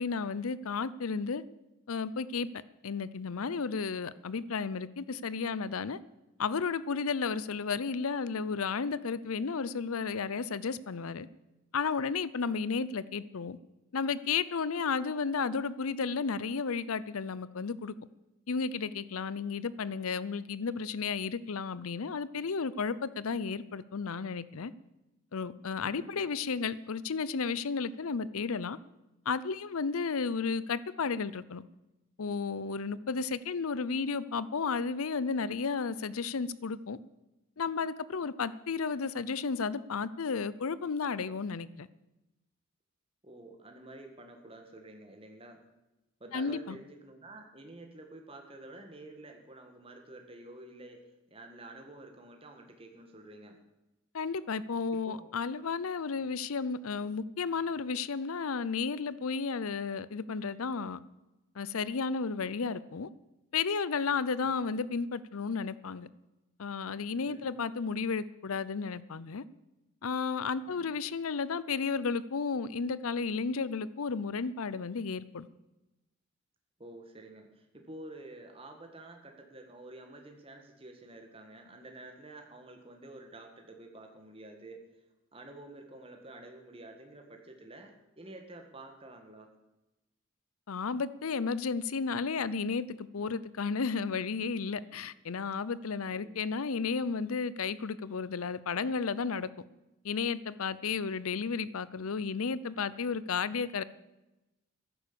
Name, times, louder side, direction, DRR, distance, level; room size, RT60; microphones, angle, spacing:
voice 1, 0.0-1.4 1.9-2.5 2.8-6.0 6.4-11.3 11.7-13.6 13.9-17.9 18.5-24.7 25.3-28.8 29.3-31.6 32.2-37.0 37.6-41.9 46.3-46.8 54.1-61.0 61.5-63.1 63.5-66.1 66.6-69.4 70.0-75.5 90.7-99.5 100.0-103.8, left 5 dB, 85° left, 0.6 m, -33 dB
voice 2, 25.8-26.2 43.2-45.6 46.2-51.0 51.3-53.6 55.0-55.3 67.2-67.5 70.7-70.9 76.8-84.8 85.3-89.5 96.1-96.3, right 2 dB, 25° right, 1.8 m, -49 dB
14.0 x 11.0 x 6.9 m
head